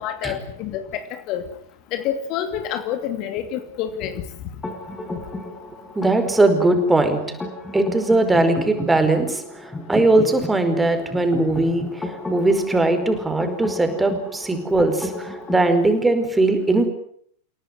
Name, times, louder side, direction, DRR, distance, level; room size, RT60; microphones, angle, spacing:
voice 1, 0.0-1.5 1.9-4.2, left 10 dB, 40° left, 8 dB, 2.6 m, -28 dB
sound 1, 4.6-15.7, left 2 dB, 10° left, 5.2 m, -33 dB
voice 2, 5.9-7.2 7.7-16.9, right 2 dB, 10° right, 7 dB, 5.0 m, -20 dB
29.5 x 17.5 x 9.5 m, 0.64 s
figure-of-eight pair, 90°, 0 cm